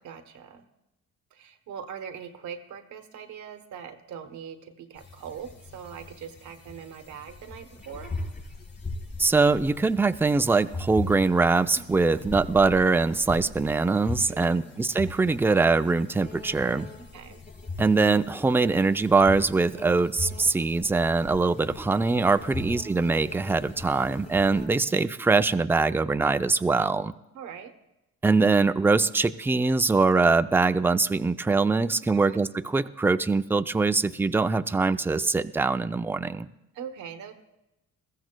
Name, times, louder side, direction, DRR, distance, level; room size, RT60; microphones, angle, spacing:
voice 1, 0.0-0.7 1.3-8.2 14.3-14.7 17.0-17.4 22.5-22.7 24.9-25.0 27.3-27.7 32.1-32.4 36.7-37.3, right 7 dB, 75° right, 7 dB, 1.1 m, -42 dB
sound 1, 5.0-24.7, left 3 dB, 35° left, 4.4 m, -40 dB
voice 2, 9.2-16.9 17.8-27.1 28.2-36.5, right 3 dB, 10° right, 11 dB, 0.4 m, -23 dB
21.5 x 14.5 x 2.2 m, 0.93 s
cardioid pair, 90°, 30 cm